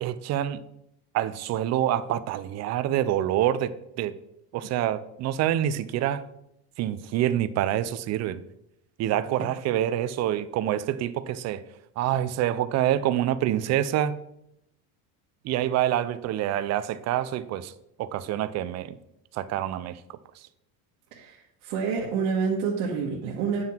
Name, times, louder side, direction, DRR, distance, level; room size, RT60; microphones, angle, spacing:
voice 1, 0.0-0.6 1.1-3.7 4.0-4.2 4.5-6.2 6.8-8.4 9.0-11.6 12.0-14.2 15.4-17.7 18.0-19.0 19.3-20.0, right 12 dB, 40° right, 13 dB, 0.5 m, -26 dB
voice 2, 21.6-23.6, right 5 dB, 70° right, -3 dB, 1.6 m, -27 dB
9.3 x 6.0 x 4.4 m, 0.81 s
cardioid pair, 140°, 44 cm